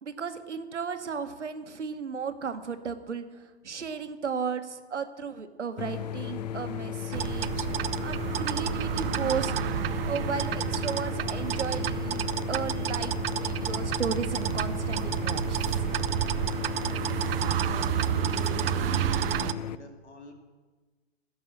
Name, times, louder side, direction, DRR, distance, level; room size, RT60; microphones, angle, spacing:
voice 1, 0.0-7.7 8.0-9.5 10.0-15.8, right 6 dB, 85° right, 9 dB, 1.1 m, -35 dB
sound 1, 5.8-19.8, left 9 dB, 40° left, 0.4 m, -35 dB
sound 2, 7.1-19.5, right 12 dB, 55° right, 0.5 m, -30 dB
voice 2, 17.7-18.4 19.3-20.3, left 3 dB, 75° left, 4 dB, 2.4 m, -48 dB
15.5 x 5.4 x 7.7 m, 1.3 s
hypercardioid pair, 125°, 34 cm